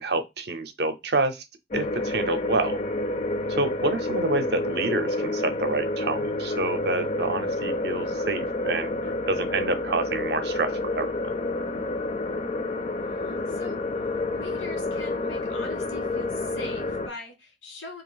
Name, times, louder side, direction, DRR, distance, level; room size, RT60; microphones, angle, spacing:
voice 1, 0.0-1.4 1.7-2.8 3.6-8.9 9.3-11.1, right 3 dB, 55° right, 0.5 m, -28 dB
sound 1, 1.7-17.1, left 2 dB, 35° left, 0.4 m, -29 dB
voice 2, 13.1-13.8 14.3-18.0, left 1 dB, 90° left, 1.5 m, -41 dB
2.8 x 2.5 x 3.9 m
head